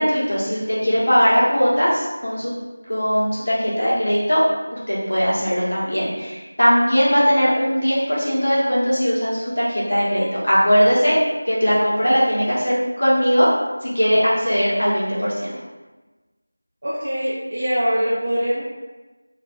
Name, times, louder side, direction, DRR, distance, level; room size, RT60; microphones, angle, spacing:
voice 1, 0.0-2.5 2.9-4.4 4.9-11.1 11.4-13.5 13.8-15.5, equal, 80° left, -8 dB, 1.2 m, -19 dB
voice 2, 16.8-18.6, equal, 45° right, -6 dB, 0.4 m, -23 dB
2.6 x 2.5 x 2.4 m, 1.2 s
figure-of-eight pair, 175°, 0 cm